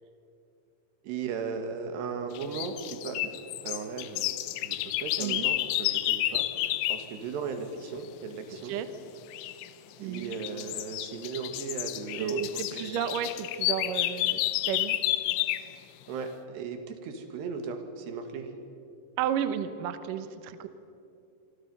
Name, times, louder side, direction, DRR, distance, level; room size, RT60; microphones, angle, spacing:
voice 1, 1.0-3.3 3.6-4.3 4.6-6.5 6.9-8.8 10.0-12.8 16.1-18.6, right 5 dB, 65° right, 6 dB, 3.7 m, -37 dB
sound 1, 2.4-7.1 9.3-9.7 10.1-15.7, left 15 dB, 85° left, 3.2 m, -30 dB
voice 2, 8.5-8.9 10.0-10.4 12.2-14.4 14.6-15.0 19.2-20.7, right 9 dB, 85° right, 10 dB, 1.9 m, -32 dB
26.5 x 25.5 x 5.5 m, 2.6 s
omnidirectional pair, 5.5 m